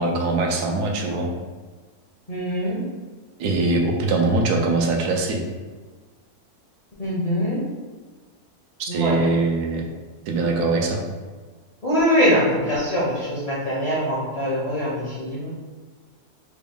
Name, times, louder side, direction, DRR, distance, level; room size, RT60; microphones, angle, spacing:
voice 1, 0.0-1.3 3.4-5.4 8.8-9.8 10.3-11.0, right 3 dB, 90° right, 1 dB, 1.2 m, -22 dB
voice 2, 2.3-2.8 7.0-7.6 8.9-9.3 11.8-15.5, equal, 45° left, -8 dB, 0.5 m, -23 dB
3.5 x 2.3 x 3.5 m, 1.4 s
omnidirectional pair, 1.6 m